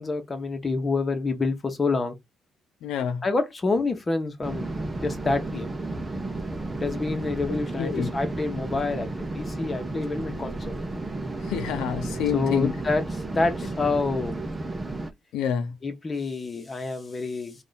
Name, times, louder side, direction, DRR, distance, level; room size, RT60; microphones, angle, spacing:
voice 1, 0.0-2.1 3.2-4.7 5.0-5.7 6.8-10.6 12.3-13.0 13.3-14.3 15.8-17.5, left 3 dB, 30° left, 1.2 m, -27 dB
voice 2, 2.8-3.3 7.8-8.1 11.4-12.7 15.3-15.7, left 8 dB, 90° left, 0.5 m, -28 dB
sound 1, 4.4-15.1, right 2 dB, 20° right, 0.8 m, -32 dB
3.7 x 2.6 x 3.9 m
cardioid pair, 90°, 0 cm